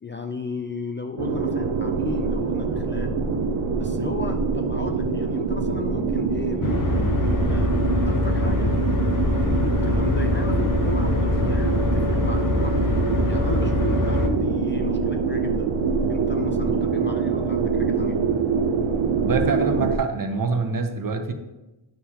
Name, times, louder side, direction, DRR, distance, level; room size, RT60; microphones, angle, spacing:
voice 1, 0.0-3.1 3.8-7.7 8.1-8.7 9.2-15.7 16.1-18.2, left 4 dB, 25° left, 5 dB, 0.4 m, -34 dB
sound 1, 1.2-20.0, right 5 dB, 75° right, 0.8 m, -24 dB
sound 2, 6.6-14.3, left 3 dB, 45° left, 0.8 m, -24 dB
sound 3, 8.7-13.8, left 1 dB, 5° left, 2.1 m, -46 dB
voice 2, 19.2-21.3, right 4 dB, 45° right, 6 dB, 0.8 m, -25 dB
9.0 x 6.5 x 2.9 m, 1.0 s
wide cardioid pair, 100°, 47 cm